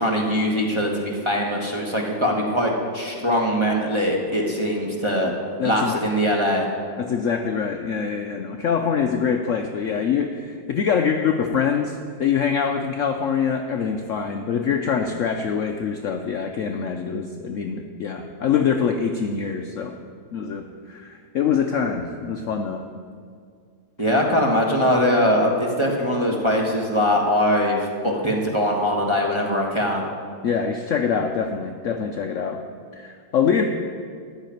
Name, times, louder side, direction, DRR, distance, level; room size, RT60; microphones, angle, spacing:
voice 1, 0.0-5.3 5.6-6.7 24.0-30.1, equal, 15° right, -1 dB, 1.2 m, -22 dB
voice 2, 5.6-6.1 7.0-19.9 20.3-22.8 30.4-32.6 32.9-33.6, left 7 dB, 80° left, 4 dB, 0.7 m, -24 dB
13.5 x 4.9 x 9.1 m, 2.1 s
omnidirectional pair, 2.1 m